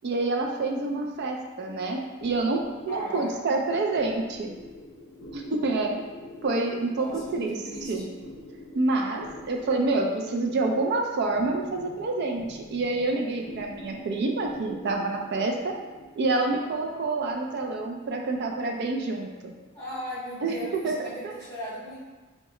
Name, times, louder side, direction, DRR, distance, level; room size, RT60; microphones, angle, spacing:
voice 1, 0.0-4.5 5.3-6.0 6.4-7.1 7.3-8.0 8.7-15.7 16.2-19.5 20.4-20.5 20.8-21.1, right 3 dB, 50° right, 1 dB, 0.4 m, -27 dB
sound 1, 2.2-20.9, equal, 70° left, 0.5 m, -46 dB
voice 2, 2.9-3.4 6.8-8.1 19.7-22.0, equal, 20° left, -9 dB, 1.4 m, -38 dB
4.5 x 2.2 x 3.0 m, 1.3 s
head